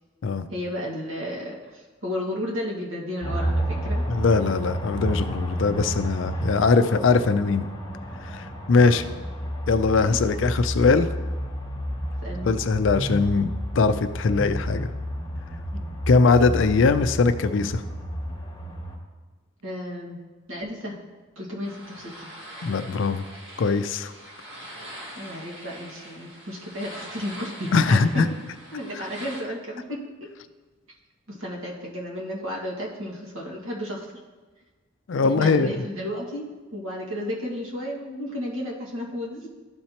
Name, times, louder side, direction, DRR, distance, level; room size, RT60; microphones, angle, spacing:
voice 1, 0.5-4.1 8.7-9.2 10.1-10.4 12.2-12.5 19.6-20.2 20.5-21.0 21.4-22.3 25.2-28.2 28.7-30.0 31.3-34.2 35.2-36.4 36.7-39.5, left 1 dB, 90° right, -3 dB, 1.7 m, -33 dB
sound 1, 3.2-19.0, equal, 20° left, 0.9 m, -31 dB
voice 2, 4.1-7.7 8.2-9.0 9.7-11.1 12.4-14.9 16.1-17.8 22.6-23.3 23.6-24.1 27.7-28.3 35.1-35.7, left 4 dB, 70° left, 11 dB, 0.4 m, -21 dB
sound 2, 21.6-29.4, right 1 dB, 55° right, 1.8 m, -43 dB
12.5 x 4.4 x 2.9 m, 1.2 s
head